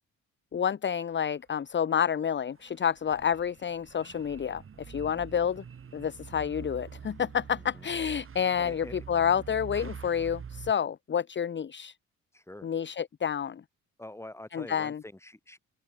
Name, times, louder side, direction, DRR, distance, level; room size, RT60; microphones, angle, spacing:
voice 1, 0.5-5.6 5.9-11.9 12.6-13.6 14.5-15.0, left 8 dB, 40° left, 1.0 m, -29 dB
sound 1, 2.6-10.7, right 7 dB, 45° right, 2.9 m, -45 dB
voice 2, 5.1-5.5 7.6-7.9 8.6-9.1 12.3-12.7 14.0-15.6, left 1 dB, 10° left, 5.7 m, -46 dB
open air
cardioid pair, 90°, 30 cm